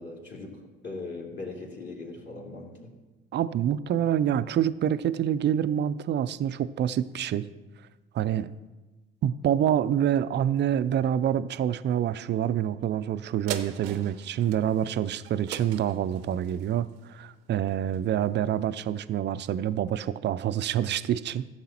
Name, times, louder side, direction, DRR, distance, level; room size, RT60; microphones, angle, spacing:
voice 1, 0.0-2.9, left 3 dB, 40° left, -2 dB, 2.9 m, -40 dB
voice 2, 3.3-7.5 8.1-8.5 9.2-21.5, right 10 dB, 40° right, 15 dB, 0.4 m, -27 dB
sound 1, 13.5-18.2 18.7-18.8, right 10 dB, 80° right, 0.6 m, -42 dB
15.0 x 7.4 x 2.9 m, 1.2 s
hypercardioid pair, 55°, 29 cm